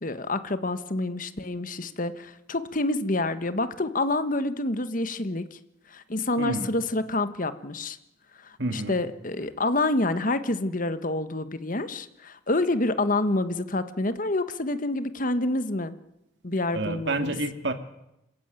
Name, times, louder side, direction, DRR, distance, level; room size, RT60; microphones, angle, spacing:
voice 1, 0.0-5.6 5.9-8.0 8.4-16.0 16.4-17.3, left 2 dB, 45° left, 12 dB, 1.3 m, -28 dB
voice 2, 6.4-6.7 8.6-9.0 16.7-17.7, right 2 dB, 65° right, 8 dB, 2.4 m, -29 dB
27.5 x 15.5 x 9.1 m, 0.86 s
head